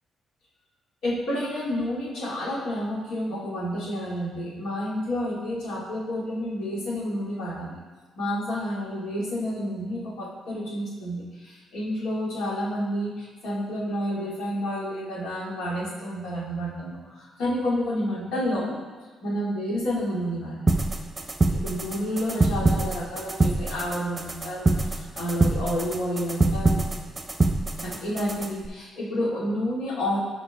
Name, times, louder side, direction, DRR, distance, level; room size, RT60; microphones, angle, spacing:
voice 1, 1.0-7.8 8.2-18.8 19.2-20.7 21.5-26.8 27.8-30.2, equal, 90° left, -6 dB, 2.3 m, -30 dB
sound 1, 20.7-28.7, right 2 dB, 20° right, 0.7 m, -25 dB
12.0 x 5.1 x 3.5 m, 1.4 s
cardioid pair, 115°, 0 cm